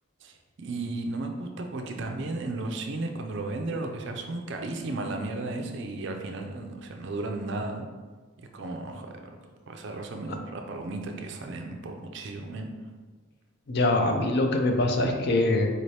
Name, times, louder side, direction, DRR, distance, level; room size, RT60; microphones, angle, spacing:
voice 1, 0.2-7.9 8.4-9.4 9.7-12.7, right 2 dB, 55° right, 4 dB, 0.4 m, -34 dB
voice 2, 13.7-15.7, left 2 dB, 50° left, 3 dB, 0.4 m, -23 dB
4.3 x 2.8 x 3.2 m, 1.4 s
head